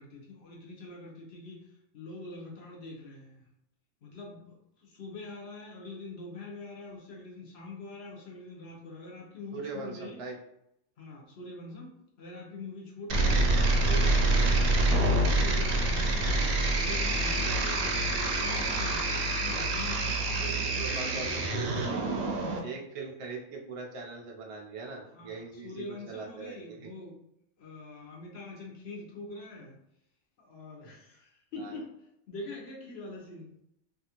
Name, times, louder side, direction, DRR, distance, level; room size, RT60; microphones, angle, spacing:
voice 1, 0.0-3.5 4.0-10.2 11.0-13.4 13.8-14.5 14.8-21.3 22.4-22.6 25.1-27.2 27.6-29.8 30.4-31.9 32.3-33.5, left 2 dB, 60° left, -2 dB, 0.9 m, -44 dB
voice 2, 9.5-10.3 20.2-20.3 20.9-22.2 22.6-26.9 31.6-31.8, right 4 dB, 60° right, 0 dB, 0.3 m, -41 dB
sound 1, 13.1-22.6, right 2 dB, 80° right, 0.9 m, -26 dB
2.7 x 2.4 x 2.8 m, 0.78 s
omnidirectional pair, 1.3 m